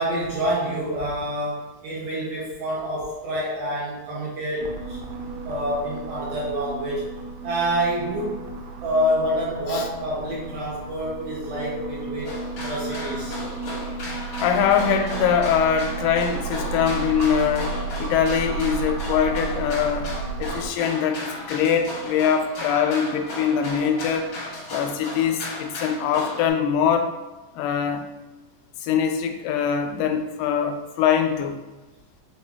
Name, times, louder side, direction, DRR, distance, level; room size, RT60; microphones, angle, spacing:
voice 1, 0.0-5.0 5.4-7.1 7.4-8.4 8.8-13.4, equal, 75° right, -5 dB, 1.5 m, -27 dB
sound 1, 4.6-20.7, right 4 dB, 90° right, 2.2 m, -33 dB
sound 2, 12.2-26.5, left 2 dB, 65° left, 1.1 m, -35 dB
voice 2, 14.4-20.1 20.4-24.3 24.7-27.1 27.6-28.0 28.8-31.6, left 7 dB, 90° left, 5 dB, 2.2 m, -23 dB
5.8 x 2.4 x 3.4 m, 1.2 s
omnidirectional pair, 3.8 m